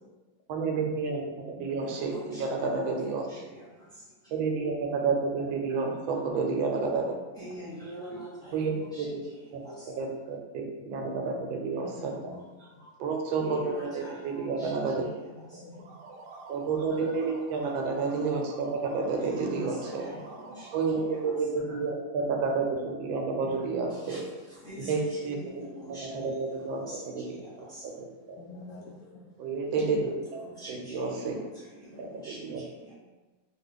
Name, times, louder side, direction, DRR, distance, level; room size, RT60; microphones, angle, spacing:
voice 1, 0.5-3.3 4.3-7.0 8.5-9.1 10.0-12.1 13.0-15.0 16.5-20.0 20.7-24.2 24.9-25.4 26.1-26.9 27.2-27.3 28.0-28.4 29.4-30.1 30.7-31.4 32.0-32.1 32.4-32.6, right 4 dB, 90° right, 2 dB, 1.4 m, -30 dB
voice 2, 1.5-2.1 2.9-3.7 5.4-5.5 6.6-7.2 7.6-7.7 11.1-11.5 11.8-12.8 14.6-16.2 19.2-20.2 23.4-24.2 28.4-29.0 29.8-30.1 31.3-31.4, left 3 dB, 85° left, -4 dB, 0.8 m, -47 dB
voice 3, 2.1-4.3 5.7-5.8 7.3-9.9 13.4-15.6 17.0-17.1 19.2-21.8 23.9-27.8 28.7-29.1 30.2-32.9, equal, 5° left, -10 dB, 0.7 m, -45 dB
sound 1, 15.7-21.4, right 3 dB, 75° right, 1.1 m, -48 dB
3.1 x 2.3 x 3.5 m, 1.2 s
omnidirectional pair, 2.1 m